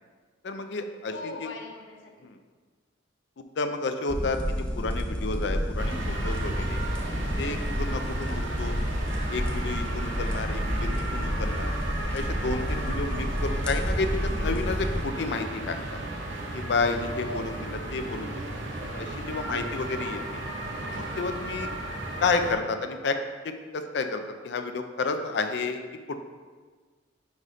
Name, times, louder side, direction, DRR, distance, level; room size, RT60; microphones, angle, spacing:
voice 1, 0.4-1.1 1.4-1.5 2.2-2.4 3.4-6.8 7.4-8.8 9.3-11.7 12.1-16.0 16.5-18.4 18.9-20.2 20.9-21.7 22.2-23.2 23.4-25.8 26.1-26.2, left 3 dB, 65° left, 7 dB, 0.4 m, -31 dB
voice 2, 1.1-2.3 8.1-8.5 17.1-17.6 20.0-20.5, left 2 dB, 90° left, 3 dB, 0.8 m, -41 dB
sound 1, 4.1-15.0, equal, 5° left, 0.5 m, -30 dB
sound 2, 5.8-22.5, right 1 dB, 75° right, 0.8 m, -34 dB
5.0 x 4.1 x 4.9 m, 1.5 s
head